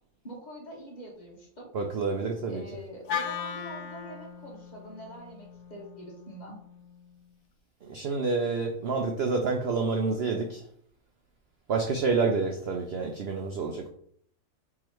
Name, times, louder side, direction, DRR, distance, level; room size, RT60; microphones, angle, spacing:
voice 1, 0.2-1.7 2.5-6.6, equal, 30° left, -2 dB, 1.1 m, -44 dB
voice 2, 1.7-2.6 7.9-10.6 11.7-13.9, right 4 dB, 75° right, 3 dB, 0.6 m, -28 dB
Wind instrument woodwind instrument, 3.1-7.3, left 7 dB, 80° left, 1.1 m, -38 dB
3.8 x 3.1 x 4.5 m, 0.62 s
omnidirectional pair, 1.6 m